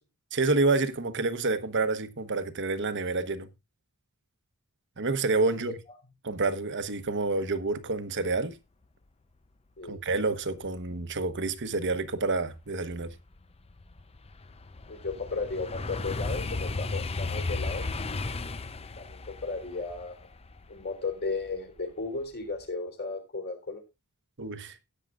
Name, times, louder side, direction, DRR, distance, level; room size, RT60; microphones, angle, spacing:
voice 1, 0.3-3.5 5.0-5.7 6.2-8.5 9.9-13.1 24.4-24.8, right 3 dB, 55° right, 1.1 m, -28 dB
sound 1, 12.2-12.3 12.7-21.8 22.2-22.6, left 3 dB, 25° left, 0.6 m, -35 dB
voice 2, 14.9-17.9 19.0-20.2 20.7-23.8, left 3 dB, 45° left, 3.7 m, -35 dB
16.5 x 9.0 x 2.5 m
head